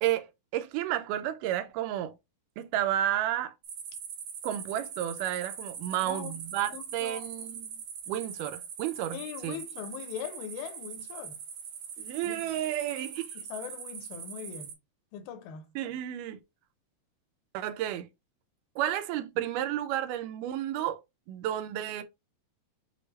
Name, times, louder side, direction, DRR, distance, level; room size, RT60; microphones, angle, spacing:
voice 1, 0.0-2.1 2.6-3.5 4.4-7.7 8.1-9.6 12.0-13.3 15.8-16.4 17.5-18.1 18.8-21.0 21.3-22.0, right 12 dB, 80° right, 2.0 m, -32 dB
sound 1, 3.6-14.7, right 7 dB, 65° right, 2.3 m, -42 dB
voice 2, 6.0-6.4 6.7-7.3 9.1-11.4 12.2-12.5 13.4-14.7 15.1-15.6, left 9 dB, 85° left, 2.3 m, -41 dB
6.6 x 2.3 x 3.1 m
omnidirectional pair, 4.1 m